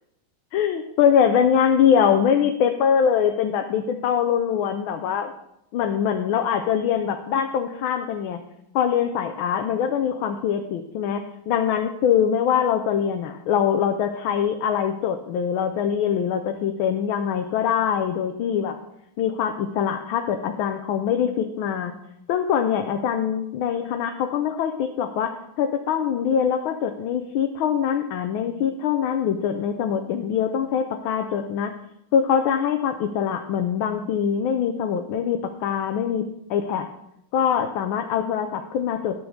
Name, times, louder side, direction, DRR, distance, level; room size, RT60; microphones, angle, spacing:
voice 1, 0.5-5.3 5.7-8.4 8.7-18.7 19.2-21.9 22.3-31.7 32.1-36.2 36.5-36.9 37.3-39.2, left 8 dB, 80° left, 5 dB, 1.5 m, -23 dB
12.5 x 4.8 x 6.4 m, 0.82 s
omnidirectional pair, 2.2 m